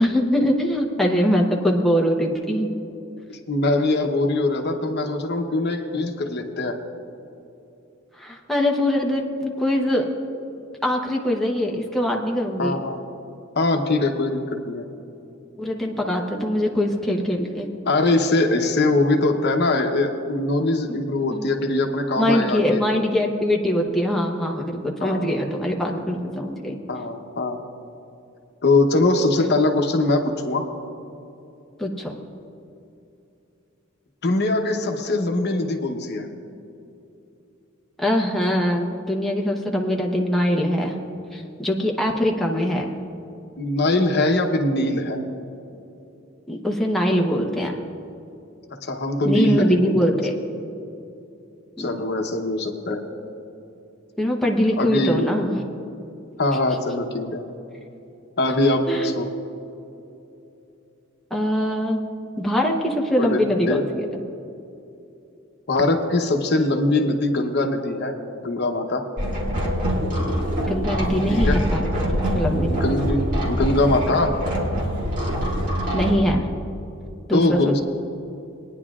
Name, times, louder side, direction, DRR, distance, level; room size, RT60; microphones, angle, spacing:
voice 1, 0.0-2.7 8.1-10.1 10.5-12.8 15.6-17.7 20.9-21.0 21.3-21.5 22.2-26.8 29.4-29.5 31.8-32.1 38.0-41.0 41.3-42.9 46.5-47.8 49.2-50.4 51.8-52.0 54.2-55.6 58.9-59.1 61.3-62.0 62.4-64.1 70.7-71.9 72.3-73.0 75.9-76.5 77.3-77.8, equal, ahead, -1 dB, 0.9 m, -22 dB
voice 2, 3.5-6.8 12.6-13.0 13.6-14.9 17.9-22.8 25.0-25.3 26.9-27.6 28.6-30.7 34.2-36.3 43.6-45.2 48.8-50.2 51.8-53.1 54.8-55.2 56.4-57.4 58.4-59.3 63.2-63.8 65.7-69.1 71.3-71.6 72.7-73.2 73.5-74.4 77.3-77.8, left 2 dB, 55° left, 4 dB, 0.9 m, -22 dB
sound 1, 69.2-76.1, equal, 40° right, 2.0 m, -24 dB
21.0 x 10.0 x 2.4 m, 2.8 s
head